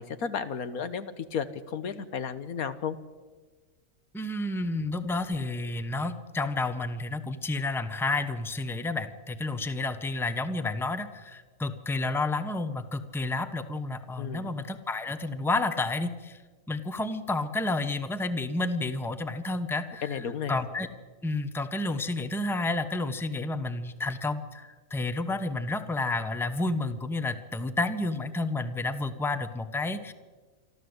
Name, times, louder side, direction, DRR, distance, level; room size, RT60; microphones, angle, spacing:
voice 1, 0.0-3.0 14.2-14.5 20.0-20.6, left 7 dB, 75° left, 12 dB, 1.6 m, -33 dB
voice 2, 4.1-16.4 16.7-20.2 20.5-20.9 21.2-30.1, left 2 dB, ahead, 10 dB, 0.7 m, -30 dB
25.5 x 13.5 x 8.0 m, 1.4 s
omnidirectional pair, 1.5 m